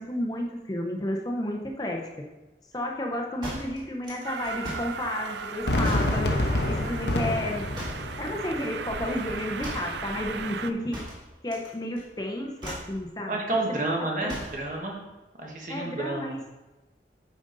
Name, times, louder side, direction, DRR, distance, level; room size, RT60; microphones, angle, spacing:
voice 1, 0.0-2.0 2.7-7.6 8.2-11.0 11.4-13.7 14.2-14.3 15.7-16.5, left 1 dB, 20° left, 1 dB, 0.7 m, -32 dB
sound 1, 3.4-5.0 5.8-6.2 7.7-8.2 9.6-10.0 10.9-11.7 12.0-12.2 12.6-13.0 14.3-14.7, equal, 25° right, 2.1 m, -38 dB
Train, 4.2-10.7, right 6 dB, 80° right, 0.5 m, -37 dB
Fireworks, 5.7-10.7, left 1 dB, 80° left, 0.9 m, -29 dB
voice 2, 13.3-15.0 15.4-16.4, right 2 dB, 45° right, 0 dB, 1.4 m, -30 dB
8.9 x 5.1 x 3.9 m, 1.1 s
head